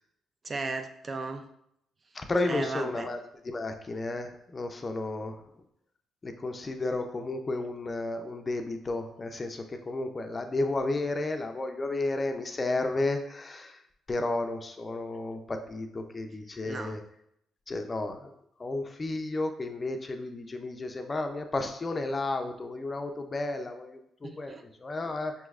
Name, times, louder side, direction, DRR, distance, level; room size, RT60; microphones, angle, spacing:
voice 1, 0.4-1.5 2.5-3.1 16.6-17.0 24.2-24.6, right 3 dB, 35° right, 7 dB, 0.4 m, -35 dB
voice 2, 2.1-3.2 3.4-5.4 6.2-13.8 14.1-17.0 17.7-18.3 18.6-24.5 24.8-25.3, left 2 dB, 30° left, 5 dB, 0.4 m, -32 dB
5.4 x 3.1 x 2.4 m, 0.74 s
cardioid pair, 90°, 0 cm